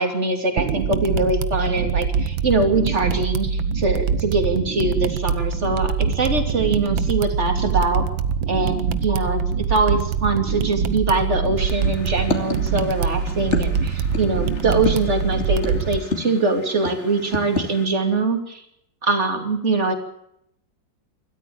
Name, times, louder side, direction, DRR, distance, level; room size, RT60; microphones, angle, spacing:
voice 1, 0.0-8.0 8.5-18.6 19.0-19.9, right 3 dB, 35° right, 5 dB, 3.1 m, -23 dB
this train is really fast, 0.6-16.0, right 6 dB, 90° right, 1.8 m, -24 dB
sound 1, 11.6-17.9, left 3 dB, 35° left, 2.7 m, -31 dB
26.0 x 13.5 x 8.8 m, 0.76 s
omnidirectional pair, 2.1 m